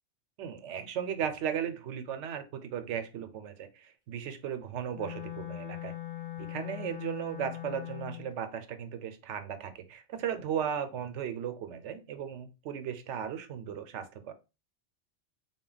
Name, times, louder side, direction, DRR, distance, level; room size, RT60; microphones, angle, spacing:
voice 1, 0.4-6.0 6.4-14.3, right 8 dB, 85° right, 10 dB, 0.9 m, -36 dB
Wind instrument woodwind instrument, 4.9-8.3, left 14 dB, 50° left, 1.9 m, -40 dB
3.7 x 2.2 x 3.8 m, 0.29 s
omnidirectional pair, 1.2 m